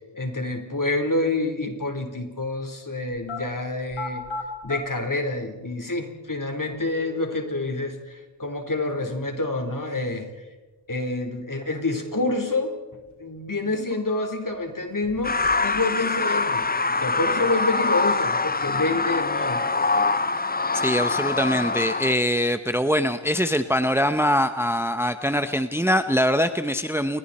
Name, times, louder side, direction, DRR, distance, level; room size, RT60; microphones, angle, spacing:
voice 1, 0.1-4.2 4.6-10.3 10.9-12.7 13.2-15.4 15.6-16.6 17.0-19.6, left 2 dB, 40° left, 4 dB, 4.3 m, -27 dB
sound 1, 3.1-3.4 3.9-4.8 5.8-5.9 6.6-7.6 11.6-12.6 13.0-13.1 13.7-14.6 15.0-15.8 16.0-16.6, left 2 dB, 75° left, 6.7 m, -38 dB
sound 2, 15.2-22.1, left 3 dB, 20° left, 0.7 m, -24 dB
voice 2, 20.7-27.2, equal, 5° right, 9 dB, 0.9 m, -23 dB
29.0 x 22.5 x 4.4 m, 1.2 s
wide cardioid pair, 60°, 47 cm